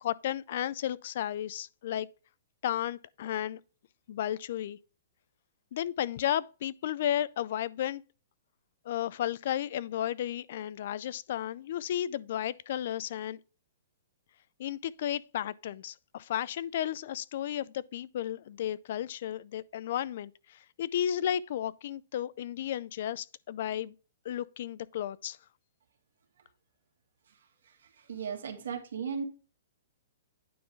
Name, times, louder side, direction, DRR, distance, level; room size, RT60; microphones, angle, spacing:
voice 1, 0.0-2.1 2.6-3.6 4.1-4.8 5.7-8.0 8.9-13.4 14.6-23.9 24.2-25.4, left 11 dB, 45° left, 0.4 m, -33 dB
voice 2, 28.0-29.2, right 6 dB, 75° right, 2.1 m, -36 dB
9.4 x 5.5 x 3.4 m
hypercardioid pair, 170°, 0 cm